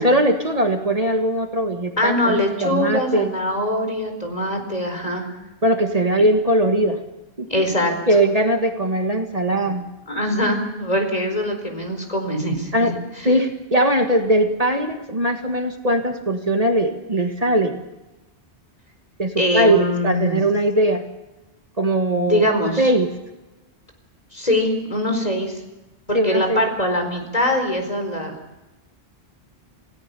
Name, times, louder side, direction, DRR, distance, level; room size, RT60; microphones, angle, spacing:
voice 1, 0.0-3.3 5.6-7.0 7.4-7.5 8.1-9.8 12.7-12.9 13.2-17.8 19.2-21.0 21.8-22.5 22.8-23.1 26.1-26.6, right 1 dB, 35° right, 4 dB, 1.7 m, -20 dB
voice 2, 2.0-5.3 7.5-8.0 9.6-9.7 10.1-13.0 19.4-20.4 22.2-22.9 24.3-25.6 26.1-28.4, left 1 dB, 35° left, 4 dB, 4.5 m, -22 dB
28.5 x 17.0 x 6.9 m, 1.0 s
omnidirectional pair, 1.1 m